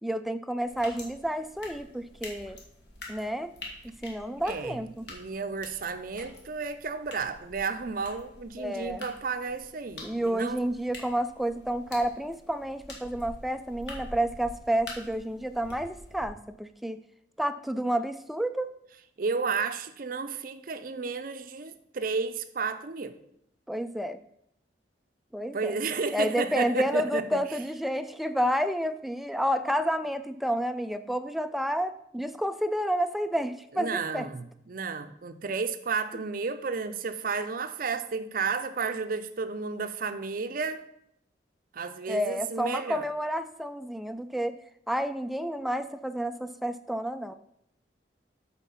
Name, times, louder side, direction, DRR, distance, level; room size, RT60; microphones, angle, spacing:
voice 1, 0.0-2.6 3.1-3.5 3.8-5.1 8.6-9.1 10.0-17.0 17.4-18.7 23.7-24.2 25.3-25.8 26.1-34.3 42.1-44.6 44.9-47.3, equal, ahead, 0.3 m, -30 dB
sound 1, 0.6-16.3, left 2 dB, 70° left, 1.7 m, -47 dB
voice 2, 4.4-4.8 5.1-10.6 19.2-23.2 25.5-27.4 33.8-40.9 41.7-43.0, right 4 dB, 50° right, 0.5 m, -32 dB
8.3 x 4.4 x 5.6 m
head